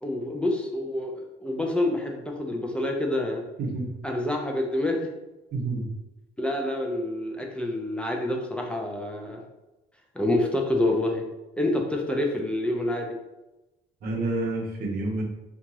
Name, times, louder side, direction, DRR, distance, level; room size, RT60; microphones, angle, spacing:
voice 1, 0.0-3.5 4.0-5.1 6.4-9.4 10.1-11.2 11.6-13.1, left 1 dB, 5° left, 1 dB, 0.4 m, -27 dB
voice 2, 3.6-3.9 5.5-5.9 14.0-15.2, right 2 dB, 65° right, 0 dB, 0.8 m, -28 dB
2.8 x 2.4 x 2.8 m, 1.0 s
cardioid pair, 110°, 17 cm